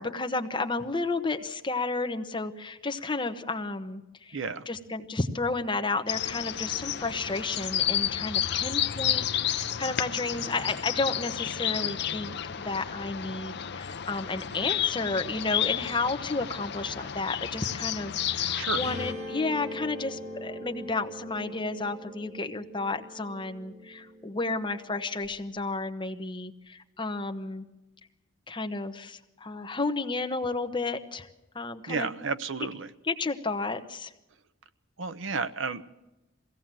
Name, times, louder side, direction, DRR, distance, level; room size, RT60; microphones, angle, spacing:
voice 1, 0.0-4.4 4.7-12.3 12.6-27.7 28.5-31.3 31.5-32.1 33.1-34.1, left 3 dB, 25° left, 6 dB, 1.1 m, -32 dB
voice 2, 4.3-4.7 11.8-11.9 18.5-18.8 31.9-32.9 35.0-35.8, right 4 dB, 70° right, 12 dB, 0.9 m, -32 dB
sound 1, 6.1-19.1, left 10 dB, 55° left, 0.6 m, -31 dB
Guitar, 18.8-25.3, equal, 85° right, 6.8 m, -41 dB
22.0 x 17.0 x 7.6 m, 0.99 s
head